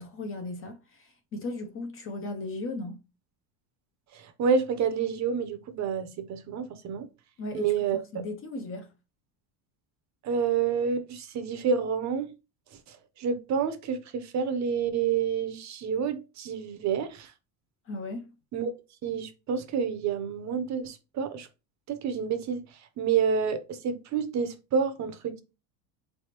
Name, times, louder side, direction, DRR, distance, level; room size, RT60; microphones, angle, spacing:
voice 1, 0.0-3.0 7.4-7.7 8.1-8.9 17.9-18.3, left 2 dB, 30° left, 0.5 m, -36 dB
voice 2, 4.1-7.1 7.5-8.2 10.2-12.3 12.9-17.3 18.5-18.7 19.0-21.5 21.9-22.6 23.0-25.4, right 6 dB, 35° right, 0.6 m, -29 dB
4.0 x 3.3 x 2.8 m
supercardioid pair, 120°, 48 cm